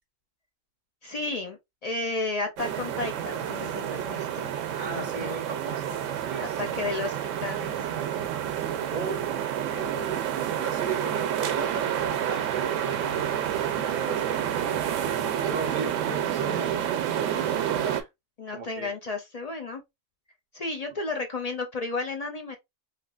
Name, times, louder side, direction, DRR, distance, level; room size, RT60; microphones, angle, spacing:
voice 1, 1.0-4.4 4.9-5.4 6.4-7.9 18.4-19.8 20.5-22.6, left 3 dB, 50° left, 0.5 m, -33 dB
sound 1, 2.6-18.0, right 10 dB, 75° right, 0.9 m, -29 dB
voice 2, 4.7-6.8 8.9-9.3 9.7-10.3 10.5-14.8 15.4-16.8 17.1-18.1 18.5-18.9, right 3 dB, 45° right, 0.7 m, -37 dB
3.2 x 2.8 x 2.3 m
omnidirectional pair, 1.3 m